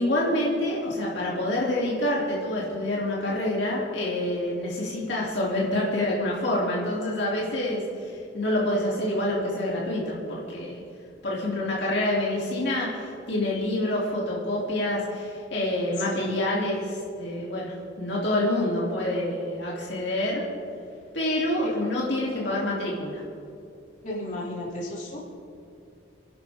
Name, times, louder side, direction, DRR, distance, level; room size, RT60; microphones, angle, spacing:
voice 1, 0.0-10.8 11.2-20.4 21.1-23.2, left 1 dB, 70° left, -5 dB, 2.8 m, -27 dB
voice 2, 24.0-25.2, left 1 dB, 40° left, -5 dB, 3.7 m, -34 dB
28.5 x 11.0 x 3.6 m, 2.5 s
head